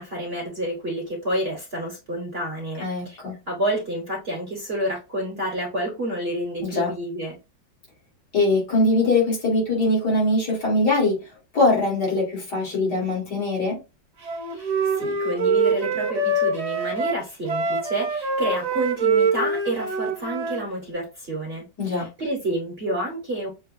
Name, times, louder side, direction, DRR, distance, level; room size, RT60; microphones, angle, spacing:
voice 1, 0.0-3.2 3.5-7.4 14.5-23.5, right 1 dB, 40° right, 1.0 m, -29 dB
voice 2, 2.8-3.3 6.6-6.9 8.3-11.2 11.5-13.8 21.8-22.1, left 2 dB, 65° left, 2.4 m, -22 dB
Wind instrument woodwind instrument, 14.2-20.6, right 3 dB, 70° right, 0.3 m, -24 dB
6.3 x 2.2 x 2.5 m
omnidirectional pair, 2.0 m